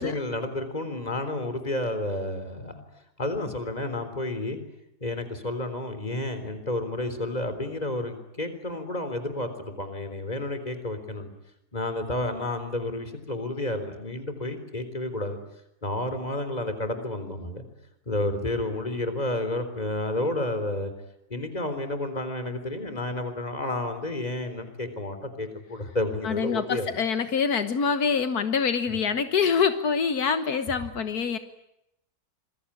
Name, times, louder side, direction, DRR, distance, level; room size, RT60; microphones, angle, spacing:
voice 1, 0.0-2.8 3.2-4.6 5.0-11.3 11.7-15.4 15.8-17.6 18.1-20.9 21.3-26.9, left 1 dB, 25° left, 9 dB, 3.9 m, -31 dB
voice 2, 26.2-31.4, left 6 dB, 80° left, 10 dB, 1.8 m, -25 dB
27.0 x 22.0 x 9.9 m, 0.83 s
omnidirectional pair, 1.6 m